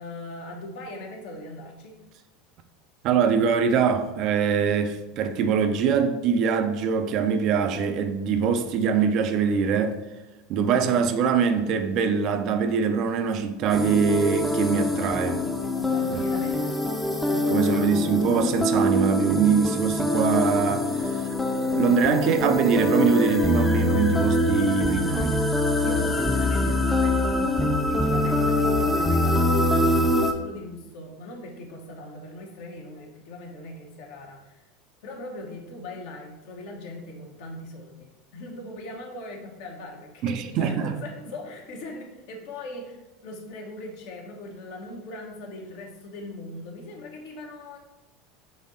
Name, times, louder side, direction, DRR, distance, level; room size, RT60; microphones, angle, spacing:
voice 1, 0.0-2.0 15.7-16.8 17.2-17.8 25.7-27.4 27.9-34.6 35.0-47.8, left 2 dB, 65° left, 0.8 m, -40 dB
voice 2, 3.0-10.0 10.5-15.4 16.1-16.2 17.5-21.4 21.7-25.4 26.6-26.7 40.2-41.0, right 6 dB, 50° right, 0.4 m, -23 dB
sound 1, 13.7-30.3, left 1 dB, 5° left, 0.5 m, -24 dB
4.0 x 2.6 x 3.8 m
hypercardioid pair, 80°, 0 cm